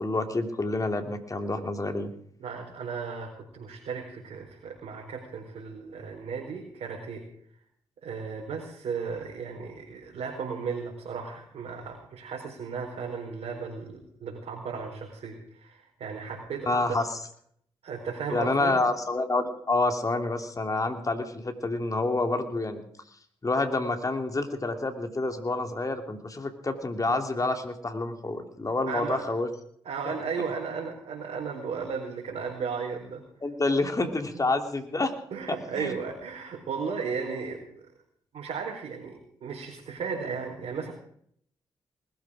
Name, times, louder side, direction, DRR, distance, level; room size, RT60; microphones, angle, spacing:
voice 1, 0.0-2.1 16.7-17.2 18.3-22.8 23.4-29.5 33.4-35.1 35.5-35.9, left 2 dB, 30° left, 6 dB, 3.1 m, -28 dB
voice 2, 2.4-7.3 8.0-17.1 17.8-18.8 28.9-29.2 29.8-33.3 35.3-37.7 38.3-40.9, right 5 dB, 70° right, -3 dB, 4.5 m, -35 dB
20.0 x 14.0 x 5.1 m, 0.63 s
hypercardioid pair, 45°, 11 cm